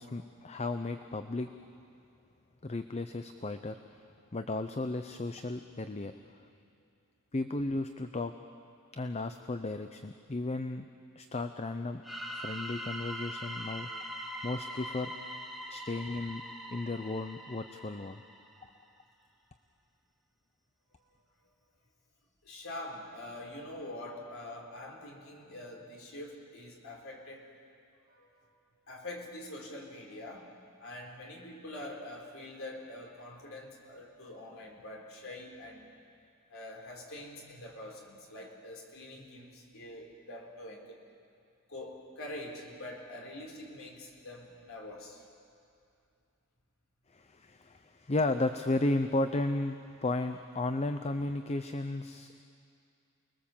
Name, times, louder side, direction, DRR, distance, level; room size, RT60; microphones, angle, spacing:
voice 1, 0.0-1.5 2.6-3.8 4.3-6.1 7.3-8.3 8.9-10.8 11.2-12.0 12.3-14.1 14.4-15.1 15.7-16.4 16.7-18.2 47.1-52.4, left 2 dB, 30° left, 8 dB, 0.6 m, -34 dB
sound 1, 12.0-18.7, equal, ahead, 1.6 m, -42 dB
voice 2, 22.4-27.5 28.1-28.6 28.9-30.5 30.8-35.9 36.5-41.0 41.7-45.2, left 1 dB, 65° left, 0 dB, 4.1 m, -45 dB
29.0 x 21.0 x 7.3 m, 2.5 s
head